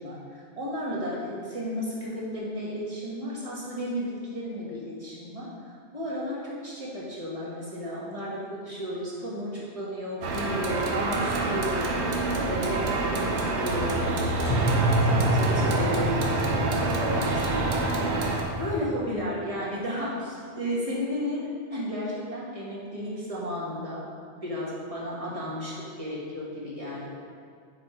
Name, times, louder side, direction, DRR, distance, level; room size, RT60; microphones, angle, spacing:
voice 1, 0.0-5.5 5.9-18.2 18.6-24.0 24.4-27.1, equal, 35° right, -7 dB, 1.5 m, -34 dB
sound 1, 10.2-18.4, right 3 dB, 80° right, 1.0 m, -27 dB
sound 2, 13.6-18.8, equal, 40° left, 1.0 m, -28 dB
6.1 x 4.4 x 4.3 m, 2.2 s
omnidirectional pair, 1.1 m